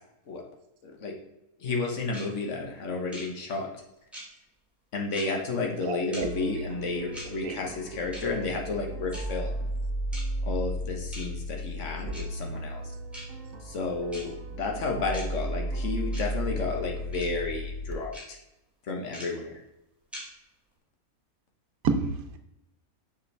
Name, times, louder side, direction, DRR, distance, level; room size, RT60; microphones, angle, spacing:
voice 1, 0.8-1.2 1.6-3.7 4.9-9.7 10.5-12.9 13.6-18.4 18.8-19.6, left 3 dB, 60° left, 2 dB, 1.5 m, -32 dB
sound 1, 2.1-2.2 3.1-3.2 4.1-4.2 5.1-5.2 6.1-6.2 7.1-7.3 8.1-8.2 9.1-9.2 10.1-10.2 11.1-11.2 12.1-12.2 13.1-13.2 14.1-14.2 15.1-15.2 16.1-16.2 17.1-17.2 18.1-18.2 19.1-19.2 20.1-20.2, equal, ahead, 2.2 m, -41 dB
voice 2, 5.9-6.5 7.4-7.6 21.8-22.4, right 5 dB, 80° right, 6 dB, 1.2 m, -29 dB
sound 2, 6.2-17.9, right 1 dB, 50° right, 0.9 m, -34 dB
6.8 x 5.4 x 3.3 m, 0.87 s
omnidirectional pair, 1.5 m